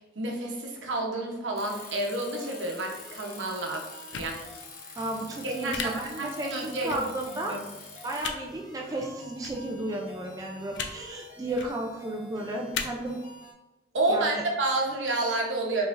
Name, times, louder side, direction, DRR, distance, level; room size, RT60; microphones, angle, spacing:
voice 1, 0.2-3.9 4.1-4.4 4.8-5.0 5.4-7.1 7.5-7.6 13.9-15.9, right 2 dB, 75° right, 0 dB, 0.8 m, -29 dB
Bicycle, 1.6-8.3, left 4 dB, 50° left, 0.8 m, -46 dB
sound 1, 1.7-13.5, equal, 20° left, 0.9 m, -50 dB
sound 2, 4.1-4.3 5.7-5.8 6.9-7.0 8.2-8.4 9.4-9.5 10.7-10.9 11.5-11.7 12.7-12.8, left 6 dB, 65° left, 0.4 m, -33 dB
voice 2, 5.0-7.6 8.0-13.2 14.1-14.4, right 1 dB, 20° right, 0 dB, 0.3 m, -33 dB
4.8 x 3.1 x 2.5 m, 1.1 s
head